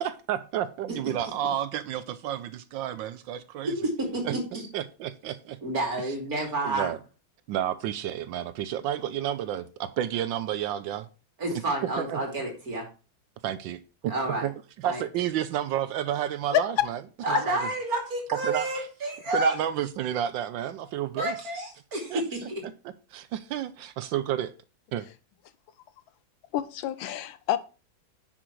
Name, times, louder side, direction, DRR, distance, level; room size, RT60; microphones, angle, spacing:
voice 1, 0.0-3.7 4.2-4.3 4.7-5.6 6.6-7.0 7.5-11.1 12.0-12.2 13.4-14.1 14.4-14.5 14.8-17.0 17.3-17.4 18.4-18.7 19.3-21.3 22.1-22.2 22.6-22.7 23.1-24.5 24.9-25.1, right 11 dB, 80° right, 1.3 m, -30 dB
voice 2, 3.6-4.6 5.6-6.9 11.4-12.9 14.0-14.5 14.8-15.0 17.2-19.5 21.2-22.6, right 2 dB, 50° right, 3.2 m, -30 dB
voice 3, 16.5-16.9 17.3-17.5 26.5-27.6, left 12 dB, 85° left, 1.5 m, -27 dB
10.0 x 6.2 x 4.6 m
omnidirectional pair, 2.1 m